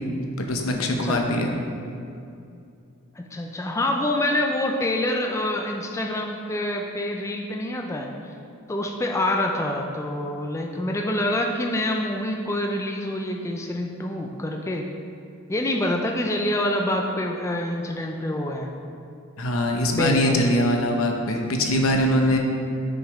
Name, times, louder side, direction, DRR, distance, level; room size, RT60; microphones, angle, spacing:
voice 1, 0.4-1.5 19.4-22.4, left 1 dB, 80° left, 2 dB, 0.8 m, -22 dB
voice 2, 3.2-8.3 8.7-14.9 15.5-18.7 19.9-20.4, left 1 dB, 15° left, 2 dB, 0.3 m, -26 dB
6.4 x 5.1 x 4.7 m, 2.6 s
head